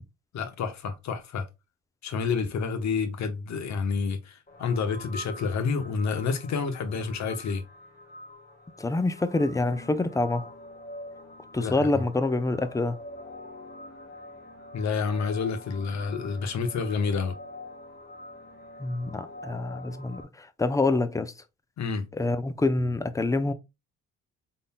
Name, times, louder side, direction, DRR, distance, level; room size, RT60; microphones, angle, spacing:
voice 1, 0.3-1.5 2.0-7.6 11.6-12.0 14.7-17.3 21.8-22.0, left 5 dB, 65° left, 1.1 m, -29 dB
sound 1, 4.5-20.2, left 1 dB, 30° left, 1.6 m, -45 dB
voice 2, 8.8-10.5 11.5-13.0 18.8-21.3 22.1-23.5, left 2 dB, 10° left, 0.5 m, -26 dB
3.8 x 3.8 x 2.2 m
cardioid pair, 90°, 30 cm